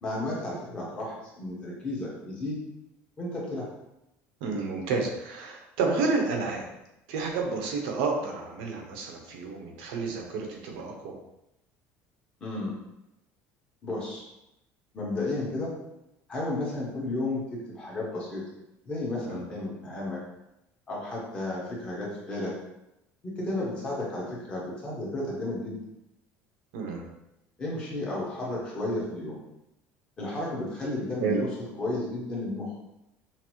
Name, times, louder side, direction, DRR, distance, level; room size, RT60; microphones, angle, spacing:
voice 1, 0.0-2.6 3.2-3.7 12.4-12.7 13.8-14.2 14.9-15.7 16.3-18.4 18.8-20.2 20.9-22.5 23.2-25.8 27.6-29.4 30.2-32.8, left 2 dB, 20° left, -5 dB, 1.0 m, -33 dB
voice 2, 4.4-6.7 7.1-11.1 19.2-19.4 26.7-27.0 31.2-31.4, right 4 dB, 80° right, 1 dB, 0.9 m, -30 dB
5.8 x 2.0 x 3.0 m, 0.88 s
cardioid pair, 175°, 5 cm